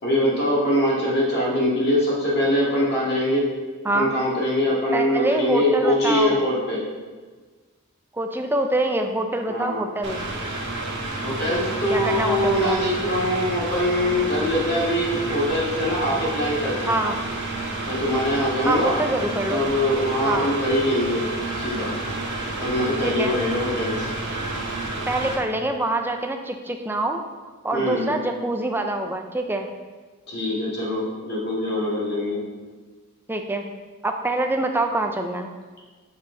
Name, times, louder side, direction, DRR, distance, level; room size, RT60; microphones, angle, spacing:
voice 1, 0.0-3.4 3.9-6.8 9.5-9.8 11.2-17.1 17.9-19.0 19.5-21.2 21.5-21.9 22.6-24.1 27.7-28.1 30.3-32.4, equal, 50° left, -5 dB, 2.0 m, -23 dB
voice 2, 4.9-6.4 8.1-10.2 11.9-12.8 16.9-17.2 18.6-19.6 20.2-20.5 23.0-23.4 25.1-27.2 27.6-29.7 33.3-33.7 34.0-35.5, right 1 dB, 10° right, 4 dB, 0.5 m, -25 dB
Mechanical fan, 10.0-25.4, right 2 dB, 55° right, 1.3 m, -30 dB
7.1 x 5.5 x 3.9 m, 1.4 s
head